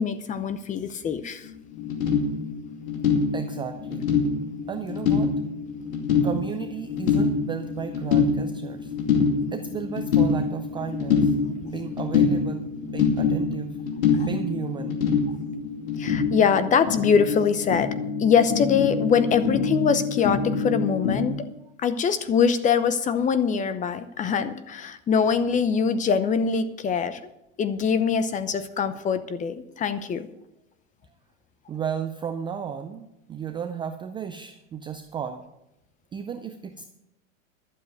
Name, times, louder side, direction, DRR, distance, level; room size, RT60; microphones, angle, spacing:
voice 1, 0.0-1.5 14.2-14.3 16.0-21.5 21.8-27.2 27.6-30.3, left 6 dB, 20° left, 13 dB, 0.7 m, -23 dB
sound 1, 1.5-1.6 1.7-21.3, left 5 dB, 85° left, 2.5 m, -25 dB
voice 2, 3.3-4.1 4.7-5.3 6.2-8.9 9.5-11.3 11.6-13.8 14.2-15.0 31.7-35.4 36.1-36.9, right 7 dB, 15° right, 7 dB, 0.4 m, -34 dB
12.0 x 7.5 x 7.8 m, 0.86 s
supercardioid pair, 130°, 40 cm